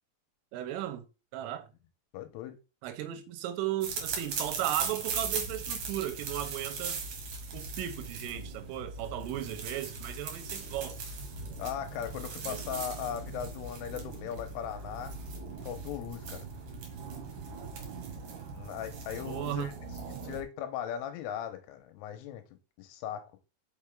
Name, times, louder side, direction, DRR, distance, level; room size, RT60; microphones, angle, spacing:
voice 1, 0.5-1.0 1.3-1.7 2.8-7.0 7.5-11.0 12.5-12.6 19.3-19.7, right 13 dB, 90° right, 3.5 m, -35 dB
voice 2, 2.1-2.6 11.6-15.2 15.6-16.5 18.5-19.7 20.2-22.4 22.8-23.3, left 10 dB, 90° left, 3.4 m, -38 dB
sound 1, 3.8-20.4, right 4 dB, 60° right, 2.3 m, -39 dB
6.4 x 5.6 x 3.6 m
omnidirectional pair, 5.7 m